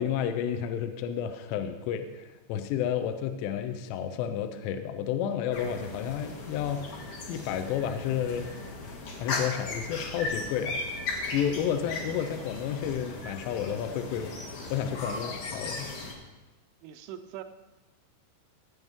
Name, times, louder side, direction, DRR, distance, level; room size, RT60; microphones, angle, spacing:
voice 1, 0.0-8.6 8.9-11.0 11.3-14.4 14.7-15.9, left 9 dB, 80° left, 8 dB, 2.5 m, -31 dB
sound 1, 5.5-16.1, left 3 dB, 65° left, 1.9 m, -37 dB
voice 2, 16.8-17.4, right 11 dB, 80° right, 8 dB, 3.0 m, -41 dB
17.0 x 7.9 x 3.6 m, 1.1 s
omnidirectional pair, 5.6 m